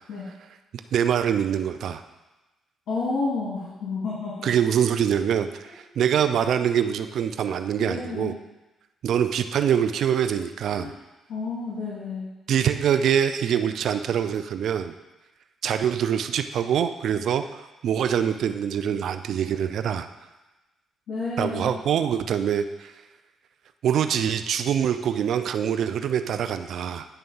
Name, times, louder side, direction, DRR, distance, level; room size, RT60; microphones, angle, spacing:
voice 1, 0.9-2.0 4.4-8.3 9.0-10.9 12.5-14.9 15.6-20.1 21.4-22.9 23.8-27.1, right 8 dB, 70° right, 9 dB, 0.4 m, -24 dB
voice 2, 2.9-4.5 5.6-5.7 7.8-8.3 10.8-11.0 11.3-12.3 21.1-21.7, left 3 dB, 70° left, -8 dB, 2.1 m, -30 dB
9.1 x 3.4 x 5.5 m, 1.1 s
cardioid pair, 90°, 0 cm